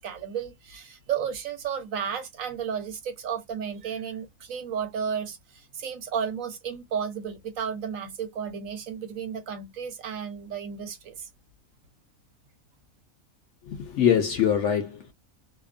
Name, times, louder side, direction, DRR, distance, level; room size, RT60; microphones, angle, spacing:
voice 1, 0.0-11.3, right 7 dB, 75° right, 1.2 m, -33 dB
voice 2, 13.6-15.1, left 9 dB, 65° left, 0.8 m, -23 dB
2.7 x 2.1 x 2.4 m
omnidirectional pair, 1.5 m